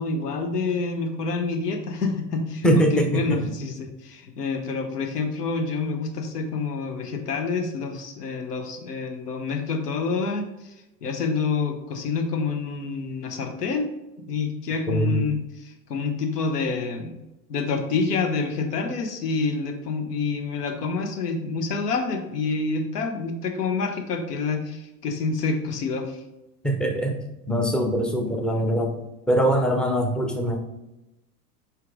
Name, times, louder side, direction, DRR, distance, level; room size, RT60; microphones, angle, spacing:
voice 1, 0.0-10.7 11.0-13.9 14.2-17.2 17.5-26.2, left 4 dB, 70° left, 5 dB, 1.1 m, -27 dB
voice 2, 2.6-3.2 14.9-15.2 26.6-27.2 27.5-28.9 29.3-30.6, right 1 dB, ahead, 3 dB, 0.6 m, -22 dB
5.7 x 4.9 x 3.8 m, 0.93 s
figure-of-eight pair, 85°, 48 cm